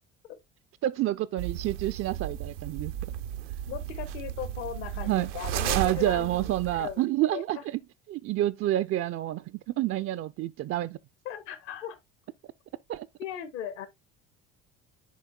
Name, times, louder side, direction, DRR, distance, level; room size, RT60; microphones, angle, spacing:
voice 1, 0.8-2.9 5.0-5.3 5.7-7.8 8.1-11.0 12.9-13.1, right 14 dB, 40° right, 0.4 m, -28 dB
sound 1, 1.4-7.0, right 11 dB, 85° right, 0.7 m, -34 dB
voice 2, 3.7-7.0 7.3-7.6 11.2-12.0 13.2-13.9, left 10 dB, 75° left, 1.4 m, -38 dB
10.0 x 4.1 x 2.3 m
hypercardioid pair, 65°, 35 cm